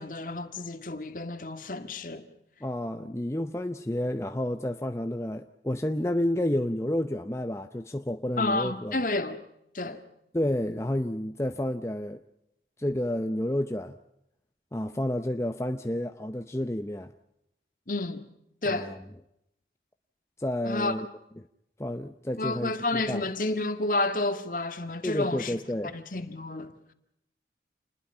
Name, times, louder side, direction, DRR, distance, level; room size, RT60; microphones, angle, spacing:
voice 1, 0.0-2.3 8.4-9.4 9.7-10.0 17.9-18.2 18.6-18.9 20.7-20.9 22.4-25.5 25.9-26.8, left 2 dB, 50° left, 1.9 m, -30 dB
voice 2, 2.6-9.0 10.3-12.2 12.8-14.0 14.7-17.1 18.7-19.0 20.4-21.1 21.4-21.5 21.8-23.2 25.0-25.9, left 1 dB, 15° left, 0.7 m, -30 dB
28.5 x 20.5 x 5.7 m
head